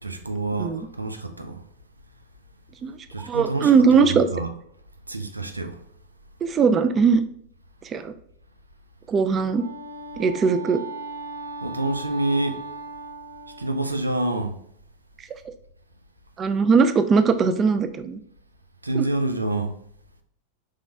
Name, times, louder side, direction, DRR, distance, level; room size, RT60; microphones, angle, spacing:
voice 1, 0.0-1.6 3.1-3.7 4.0-4.5 5.1-5.8 11.6-12.6 13.6-14.6 18.8-19.8, right 2 dB, 80° right, 0.5 m, -27 dB
voice 2, 2.8-4.2 6.4-7.2 7.8-8.1 9.1-9.6 10.2-10.8 15.3-15.4 16.4-18.2 19.0-19.1, right 5 dB, 25° right, 0.3 m, -20 dB
Wind instrument woodwind instrument, 9.4-14.1, right 2 dB, 85° left, 0.5 m, -37 dB
4.8 x 4.0 x 2.2 m
figure-of-eight pair, 90°, 0 cm